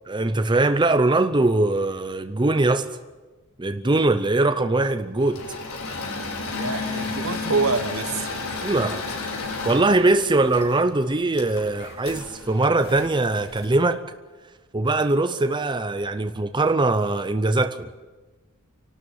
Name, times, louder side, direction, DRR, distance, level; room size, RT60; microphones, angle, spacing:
voice 1, 0.1-2.9 3.6-5.4 8.6-9.0 9.6-14.0 14.7-18.0, right 2 dB, 20° right, 0.7 m, -21 dB
Engine / Mechanisms, 5.2-13.6, left 3 dB, 85° left, 4.1 m, -32 dB
voice 2, 6.5-8.4, right 4 dB, 70° right, 1.4 m, -26 dB
sound 1, 9.8-13.7, left 2 dB, 50° left, 2.8 m, -49 dB
26.5 x 12.5 x 8.8 m
head